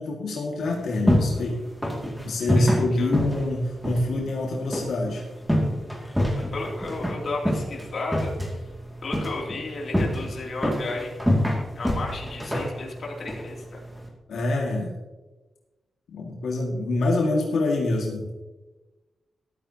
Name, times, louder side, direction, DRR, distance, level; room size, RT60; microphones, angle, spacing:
voice 1, 0.0-1.6 2.2-5.2 14.3-15.0 16.1-18.3, left 2 dB, 90° left, -1 dB, 1.9 m, -26 dB
sound 1, 0.6-14.1, equal, ahead, 2.3 m, -27 dB
voice 2, 2.5-3.1 6.3-8.6 9.0-11.2 11.8-13.8, left 2 dB, 55° left, -2 dB, 2.7 m, -34 dB
13.5 x 12.5 x 2.9 m, 1.2 s
wide cardioid pair, 130°, 0 cm